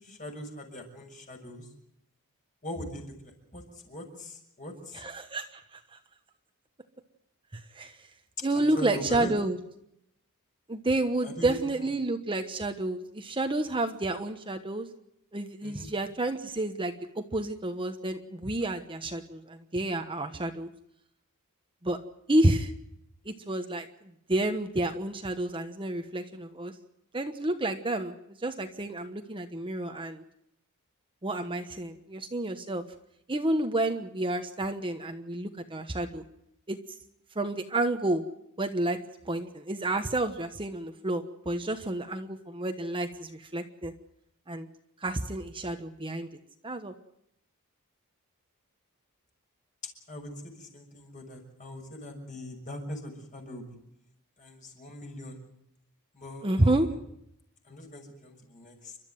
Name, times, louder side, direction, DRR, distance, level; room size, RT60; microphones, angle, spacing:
voice 1, 0.0-1.7 2.6-5.0 8.5-9.3 11.2-11.5 15.6-15.9 50.1-53.8 54.4-55.4 56.1-56.8 57.7-59.0, left 1 dB, 35° left, 3 dB, 6.3 m, -41 dB
voice 2, 4.9-6.0 7.5-8.0 8.4-9.6 10.7-14.9 15.3-20.7 21.8-22.0 22.3-22.7 23.2-23.9 24.3-26.7 27.1-28.1 28.4-30.2 31.2-32.8 33.3-36.2 36.7-36.8 37.3-38.2 38.6-39.0 39.2-43.9 44.5-44.7 45.0-46.3 46.6-46.9 56.4-56.9, right 1 dB, 25° right, 6 dB, 1.2 m, -30 dB
29.5 x 13.0 x 9.4 m, 0.78 s
head